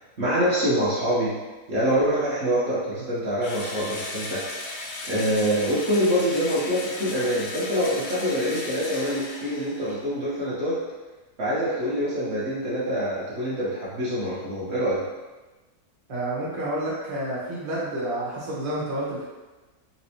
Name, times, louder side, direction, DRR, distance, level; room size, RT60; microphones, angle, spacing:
voice 1, 0.2-1.4 1.7-4.4 5.1-10.8 11.4-15.0, equal, 55° right, -9 dB, 0.9 m, -25 dB
Engine / Drill, 3.4-10.0, left 2 dB, 70° left, 0.8 m, -36 dB
voice 2, 16.1-19.2, right 1 dB, 30° right, -8 dB, 0.7 m, -29 dB
4.1 x 2.2 x 2.7 m, 1.2 s
omnidirectional pair, 1.7 m